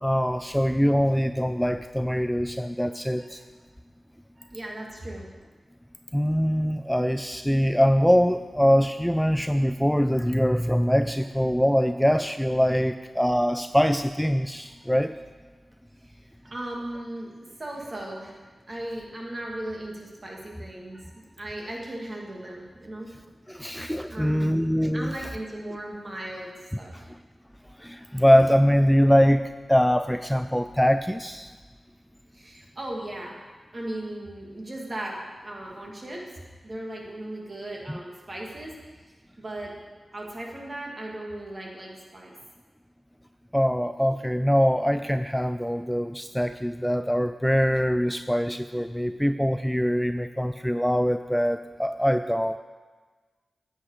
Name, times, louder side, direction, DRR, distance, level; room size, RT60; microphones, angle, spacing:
voice 1, 0.0-3.4 6.1-15.2 23.5-25.1 26.9-27.0 27.8-29.4 29.7-31.5 37.9-38.0 43.5-52.6, equal, 5° left, 9 dB, 0.4 m, -23 dB
voice 2, 4.4-5.3 6.9-7.0 16.0-17.3 17.6-18.4 18.7-23.1 23.6-23.8 24.1-26.9 32.3-33.4 33.7-36.3 36.6-38.7 39.4-39.7 40.1-42.4, right 1 dB, 45° right, -1 dB, 2.5 m, -37 dB
10.0 x 8.2 x 4.9 m, 1.4 s
cardioid pair, 45°, 0 cm